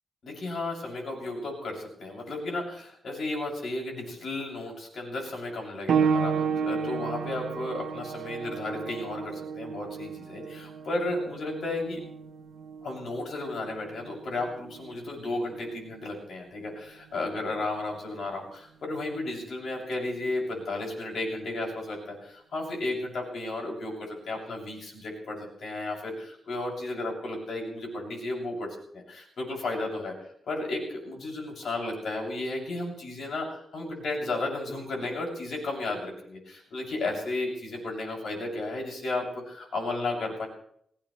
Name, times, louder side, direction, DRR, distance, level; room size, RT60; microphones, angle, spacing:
voice 1, 0.2-12.0 12.8-28.7 28.9-30.1 30.5-40.5, left 2 dB, 60° left, -1 dB, 7.2 m, -33 dB
sound 1, 5.9-16.1 17.1-17.2 17.9-18.0, right 6 dB, 80° right, 1.2 m, -32 dB
24.0 x 17.5 x 3.3 m, 0.67 s
wide cardioid pair, 170°, 0 cm